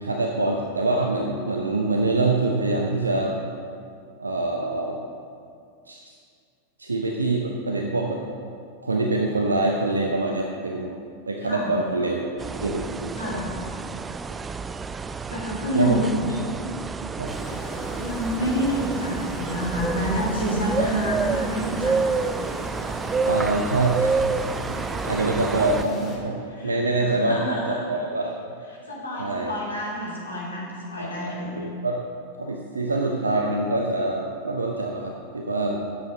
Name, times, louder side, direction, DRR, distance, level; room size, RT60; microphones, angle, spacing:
voice 1, 0.0-3.4 4.2-5.0 5.9-6.0 6.8-8.2 8.8-11.0 11.3-12.2 12.6-13.4 15.7-16.0 17.2-17.3 20.8-20.9 23.2-24.3 24.6-24.8 25.0-26.4 26.6-28.5 29.2-29.5 31.0-32.0 32.4-35.8, right 2 dB, 80° right, 1 dB, 0.7 m, -25 dB
sound 1, 12.4-25.8, right 4 dB, 15° right, 0.3 m, -29 dB
voice 2, 13.1-13.4 15.3-16.0 18.0-22.0 26.5-27.9 28.9-31.5, equal, 80° left, -5 dB, 2.9 m, -28 dB
sound 2, 17.3-26.2, left 1 dB, 10° left, 2.0 m, -38 dB
9.7 x 8.0 x 5.0 m, 2.3 s
figure-of-eight pair, 90°, 0 cm